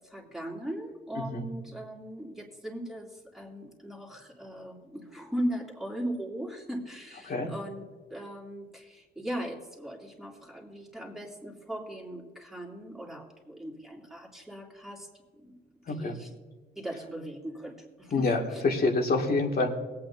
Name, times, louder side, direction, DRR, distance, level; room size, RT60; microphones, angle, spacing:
voice 1, 0.0-7.8 8.1-15.1 15.4-15.5 15.9-16.3 16.7-18.6, equal, ahead, -2 dB, 2.9 m, -38 dB
voice 2, 1.2-1.5 7.2-7.5 15.9-16.2 18.1-19.7, left 3 dB, 50° left, 1 dB, 2.4 m, -27 dB
22.5 x 8.7 x 2.8 m, 1.4 s
cardioid pair, 90°, 20 cm